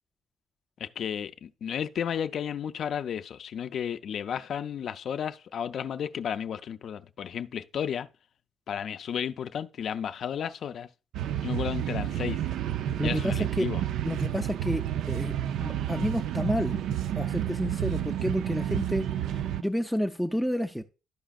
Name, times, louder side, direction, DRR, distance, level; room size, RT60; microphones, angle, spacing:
voice 1, 0.8-8.1 8.7-10.9 11.4-12.4 13.0-13.8, left 8 dB, 60° left, 0.4 m, -33 dB
sound 1, 11.1-19.6, right 11 dB, 80° right, 0.3 m, -30 dB
voice 2, 13.0-13.7 14.0-15.3 15.6-16.8 17.2-20.8, equal, ahead, 0.4 m, -30 dB
12.0 x 5.0 x 2.4 m
cardioid pair, 90°, 0 cm